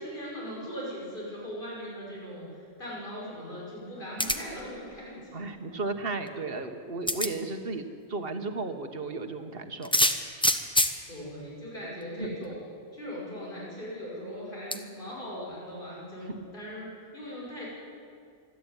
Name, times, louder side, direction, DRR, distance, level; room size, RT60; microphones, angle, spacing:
voice 1, 0.0-5.4 11.1-12.6 12.9-17.7, equal, 50° left, -5 dB, 6.3 m, -39 dB
sound 1, 4.2-4.6 6.3-6.4 7.1-7.3 9.8-11.0 12.0-12.1 12.4-12.5 14.7-14.8, equal, 5° left, 0.9 m, -25 dB
voice 2, 5.3-7.8 8.1-9.9 12.2-12.4 16.3-16.4, right 3 dB, 55° right, 7 dB, 1.5 m, -34 dB
26.5 x 11.0 x 9.1 m, 2.3 s
omnidirectional pair, 1.1 m